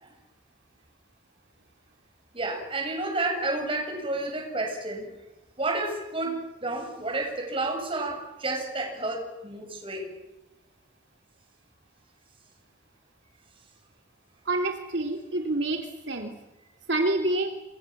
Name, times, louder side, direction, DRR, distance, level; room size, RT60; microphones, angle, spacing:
voice 1, 2.3-5.1 5.6-10.1, right 2 dB, 30° right, 3 dB, 7.3 m, -30 dB
voice 2, 14.4-16.3 16.9-17.5, right 2 dB, 70° right, 3 dB, 3.1 m, -27 dB
27.5 x 25.0 x 7.5 m, 1.1 s
head